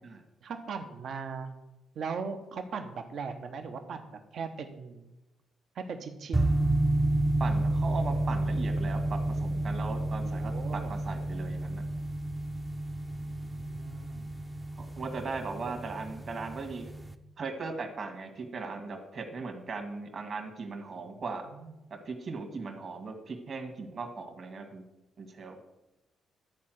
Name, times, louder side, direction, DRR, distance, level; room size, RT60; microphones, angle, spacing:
voice 1, 0.4-1.5 1.9-5.1 5.7-6.5 10.2-10.9 13.2-14.3 21.0-21.1 21.5-21.8, right 5 dB, 65° right, 6 dB, 1.1 m, -39 dB
sound 1, 6.3-17.1, right 1 dB, 15° right, 0.7 m, -30 dB
voice 2, 7.4-11.8 14.8-16.9 17.4-21.5 21.9-24.8 25.2-25.6, right 4 dB, 45° right, 4 dB, 1.9 m, -38 dB
12.0 x 4.4 x 7.8 m, 0.96 s
cardioid pair, 90°, 0 cm